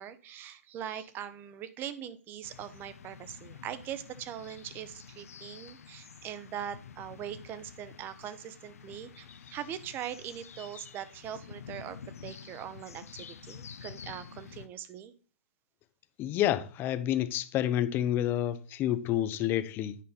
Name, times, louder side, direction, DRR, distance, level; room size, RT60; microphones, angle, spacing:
voice 1, 0.0-15.1, right 10 dB, 25° right, 0.8 m, -41 dB
sound 1, 2.4-14.7, left 7 dB, 75° left, 0.7 m, -49 dB
voice 2, 16.2-20.0, left 12 dB, 25° left, 0.6 m, -29 dB
9.2 x 5.3 x 4.1 m
hypercardioid pair, 125°, 8 cm